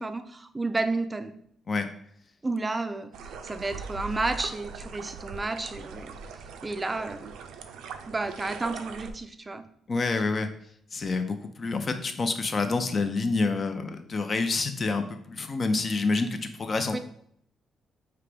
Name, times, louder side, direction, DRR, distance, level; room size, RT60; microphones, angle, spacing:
voice 1, 0.0-1.4 2.4-6.2 6.6-7.3 8.1-9.7 16.9-17.0, right 2 dB, 20° right, 9 dB, 0.4 m, -31 dB
sound 1, 3.1-9.1, right 5 dB, 85° right, 0.4 m, -41 dB
voice 2, 9.9-10.5 10.9-17.0, left 3 dB, 40° left, 8 dB, 0.6 m, -28 dB
4.9 x 2.9 x 3.4 m, 0.68 s
cardioid pair, 90°, 0 cm